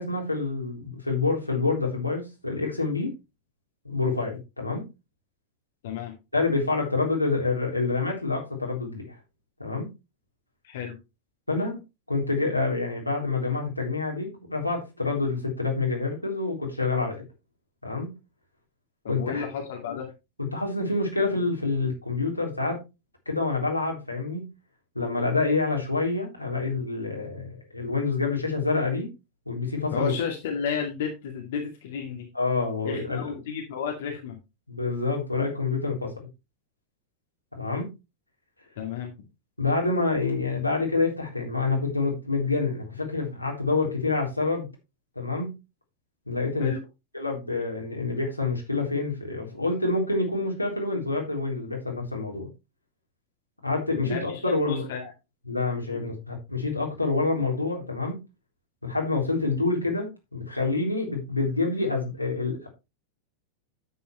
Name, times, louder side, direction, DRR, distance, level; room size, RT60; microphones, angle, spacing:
voice 1, 0.0-3.1 3.8-4.8 6.3-9.1 9.6-9.9 11.5-11.8 12.1-17.2 17.8-18.1 19.1-19.4 19.9-20.0 20.5-22.8 23.3-24.5 25.0-29.1 29.5-30.1 32.3-33.3 34.7-36.1 37.6-37.9 39.6-44.7 45.2-45.6 46.3-46.7 47.1-52.5 53.6-54.9 55.5-58.2 58.8-62.7, left 3 dB, 85° left, -1 dB, 3.7 m, -27 dB
voice 2, 10.6-11.0 19.0-20.1 29.9-32.3 32.8-34.4 38.8-39.1 46.6-46.8 54.0-54.2 54.6-55.1, left 7 dB, 55° left, 1 dB, 2.2 m, -32 dB
10.0 x 8.5 x 3.2 m, 0.26 s
figure-of-eight pair, 90°, 0 cm